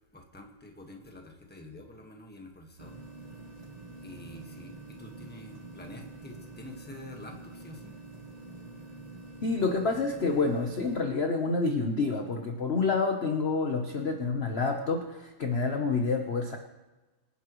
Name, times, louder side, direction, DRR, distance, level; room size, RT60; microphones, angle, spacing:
voice 1, 0.1-3.0 4.0-7.9, left 1 dB, 5° left, 2 dB, 1.2 m, -47 dB
sound 1, 2.8-11.0, right 2 dB, 25° right, 1.0 m, -46 dB
voice 2, 9.4-16.6, left 4 dB, 45° left, 4 dB, 0.9 m, -28 dB
25.0 x 10.0 x 3.1 m, 1.2 s
omnidirectional pair, 2.2 m